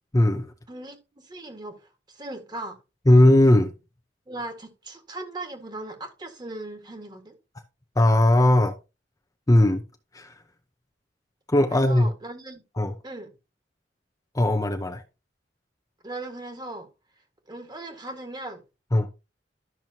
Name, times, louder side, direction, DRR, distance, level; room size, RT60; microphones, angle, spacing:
voice 1, 0.1-0.5 3.1-3.7 8.0-8.7 9.5-9.8 10.1-10.3 11.5-12.1 12.8-12.9 14.3-15.0 18.9-19.1, left 1 dB, 20° left, 0.7 m, -18 dB
voice 2, 1.2-2.8 4.3-7.4 11.7-12.6 13.0-13.3 16.0-16.9 17.5-18.6, right 2 dB, 25° right, 1.8 m, -38 dB
12.5 x 6.1 x 2.8 m
head